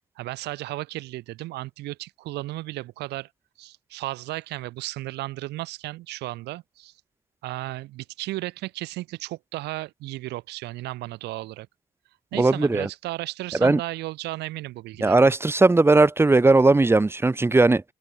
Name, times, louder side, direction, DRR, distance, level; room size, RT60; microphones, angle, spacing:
voice 1, 0.2-3.3 3.6-6.9 7.4-11.7 12.3-15.3, right 18 dB, 85° right, 3.6 m, -34 dB
voice 2, 12.3-12.9 13.6-13.8 15.0-17.8, right 3 dB, 15° right, 1.4 m, -18 dB
cardioid pair, 110°, 17 cm